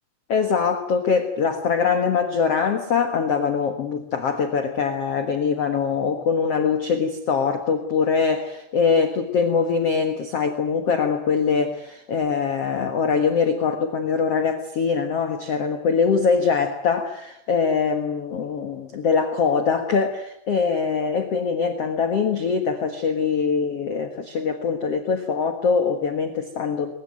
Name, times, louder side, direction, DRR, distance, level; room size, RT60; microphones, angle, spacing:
voice 1, 0.3-26.9, left 5 dB, 65° left, 6 dB, 1.5 m, -23 dB
22.0 x 20.5 x 9.3 m, 0.77 s
omnidirectional pair, 5.2 m